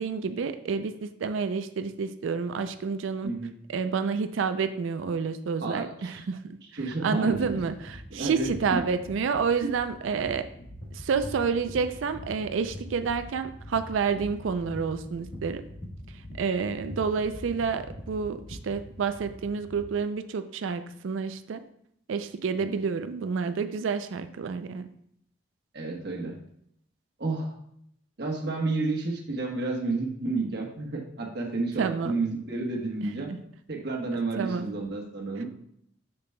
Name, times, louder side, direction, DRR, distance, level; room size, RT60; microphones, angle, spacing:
voice 1, 0.0-3.3 3.7-6.6 6.9-10.4 10.9-15.6 16.4-21.6 22.1-24.9 31.8-32.2 34.4-34.7, right 5 dB, 85° right, 10 dB, 0.4 m, -29 dB
voice 2, 5.6-6.2 6.7-7.4 8.1-8.5 9.6-9.7 22.6-22.7 25.7-26.4 27.2-27.5 28.2-33.3 33.7-35.4, right 3 dB, 55° right, -1 dB, 1.1 m, -31 dB
sound 1, 7.3-19.9, equal, 55° left, 1.3 m, -43 dB
6.8 x 6.7 x 2.2 m, 0.72 s
head